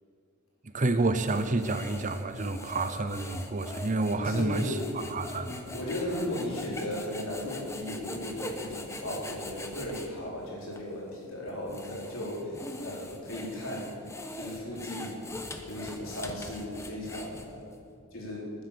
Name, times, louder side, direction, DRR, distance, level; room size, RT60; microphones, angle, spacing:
voice 1, 0.7-5.6, right 2 dB, 35° right, 10 dB, 0.7 m, -29 dB
sound 1, 1.0-10.1 10.7-10.8 11.5-17.7, left 2 dB, 15° left, 1.1 m, -42 dB
voice 2, 4.2-5.0 5.3-14.0 14.3-15.2 15.7-17.7 18.1-18.5, left 1 dB, 60° left, -4 dB, 4.5 m, -36 dB
20.0 x 9.8 x 6.9 m, 2.4 s
head